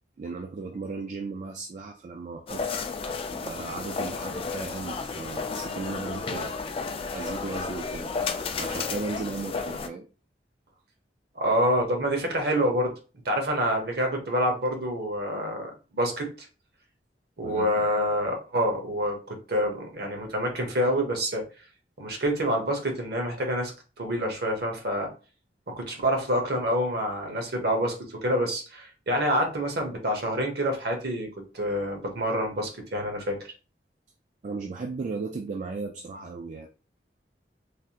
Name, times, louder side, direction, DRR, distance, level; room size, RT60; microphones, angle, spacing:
voice 1, 0.2-2.7 3.3-6.5 7.1-8.1 8.6-10.1 17.4-17.9 34.4-36.7, right 4 dB, 45° right, 4 dB, 0.3 m, -36 dB
sound 1, 2.5-9.9, left 4 dB, 30° left, 0.3 m, -32 dB
voice 2, 11.3-12.9 13.2-16.5 17.4-21.4 22.0-23.7 24.0-25.1 25.7-33.4, equal, 65° right, 3 dB, 0.9 m, -27 dB
3.3 x 2.4 x 2.8 m, 0.34 s
head